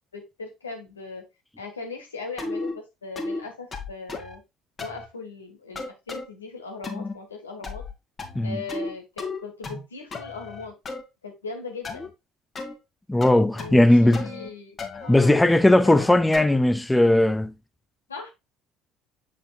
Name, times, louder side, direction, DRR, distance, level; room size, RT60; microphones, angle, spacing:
voice 1, 0.1-1.2 1.6-4.4 4.8-7.8 8.4-10.7 11.2-12.1 13.5-15.5 15.8-16.2 18.1-18.3, left 3 dB, 80° left, 1.5 m, -39 dB
sound 1, 2.4-2.7 3.2-3.4 3.7-4.4 4.8-5.1 5.8-6.3 6.8-7.2 7.6-8.9 9.2-9.8 10.1-11.0 11.8-12.1 12.5-12.7 13.2-13.9 14.1-14.5 14.8-16.6, left 3 dB, 35° left, 2.0 m, -34 dB
voice 2, 13.1-14.3 15.1-17.5, left 1 dB, 10° left, 0.5 m, -18 dB
7.8 x 5.0 x 2.4 m
figure-of-eight pair, 55°, 0 cm